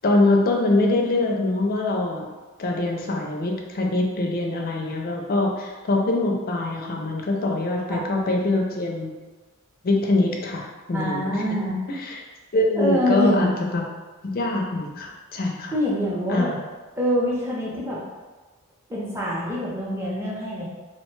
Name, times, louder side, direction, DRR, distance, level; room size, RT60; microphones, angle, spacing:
voice 1, 0.0-2.3 2.6-9.1 9.8-11.6 11.9-12.2 12.5-13.8 14.2-15.7 16.3-16.5, left 2 dB, 40° left, 0 dB, 0.4 m, -23 dB
voice 2, 10.9-11.8 12.8-13.5 15.7-16.5 17.0-18.0 18.9-20.7, equal, 10° right, -6 dB, 0.5 m, -25 dB
2.8 x 2.1 x 3.0 m, 1.3 s
head